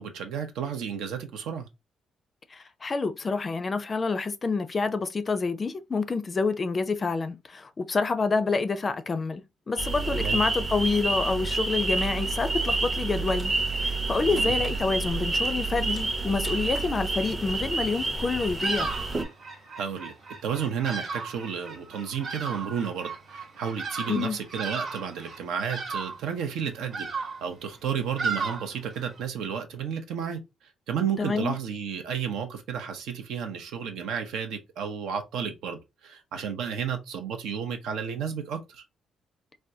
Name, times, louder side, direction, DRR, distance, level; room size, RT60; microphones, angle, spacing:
voice 1, 0.0-1.7 10.2-10.4 14.3-14.6 19.8-20.1 20.4-30.4 30.9-38.8, right 7 dB, 85° right, 0.6 m, -32 dB
voice 2, 2.5-13.5 13.8-18.9 24.1-24.4 31.2-31.6, left 4 dB, 35° left, 0.4 m, -28 dB
sound 1, 9.8-19.2, right 3 dB, 25° right, 0.6 m, -28 dB
Bird vocalization bird call bird song, 18.3-29.3, right 4 dB, 60° right, 1.0 m, -36 dB
3.4 x 2.2 x 2.6 m
cardioid pair, 90°, 0 cm